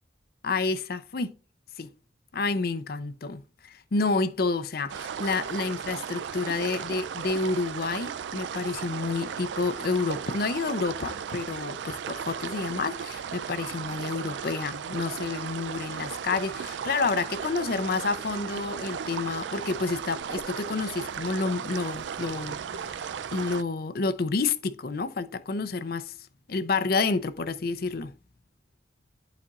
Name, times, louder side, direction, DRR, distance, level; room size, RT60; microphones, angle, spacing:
voice 1, 0.4-1.3 1.8-1.9 2.3-23.0 23.3-26.2 26.5-28.1, left 4 dB, 60° left, 0.5 m, -29 dB
sound 1, 4.9-23.6, right 7 dB, 90° right, 0.4 m, -36 dB
sound 2, 19.9-23.6, right 1 dB, 40° right, 1.3 m, -56 dB
11.5 x 4.3 x 2.4 m
head